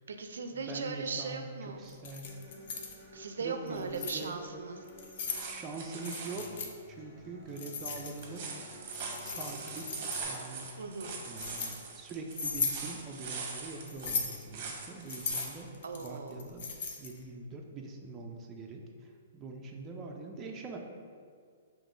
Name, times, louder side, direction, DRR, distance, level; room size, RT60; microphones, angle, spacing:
voice 1, 0.0-1.9 3.1-4.8 10.8-11.1 15.8-16.4, right 4 dB, 85° right, 6 dB, 0.3 m, -38 dB
voice 2, 0.5-2.3 3.4-4.4 5.4-6.5 6.9-8.6 9.2-10.7 11.3-16.7 17.0-20.8, right 3 dB, 20° right, 1 dB, 0.4 m, -43 dB
Keys jangling, 1.9-3.0 3.7-4.2 4.9-5.4 6.0-6.7 7.6-8.4 8.9-10.4 11.0-11.7 12.3-12.8 13.9-14.4 15.1-17.2, left 5 dB, 50° left, 0.5 m, -37 dB
Human voice / Acoustic guitar, 2.2-10.2, left 1 dB, 20° left, 0.7 m, -52 dB
sound 1, 5.0-6.6 8.1-15.6 16.0-16.1, right 4 dB, 40° right, 0.8 m, -42 dB
5.2 x 3.0 x 2.5 m, 2.1 s
hypercardioid pair, 150°, 0 cm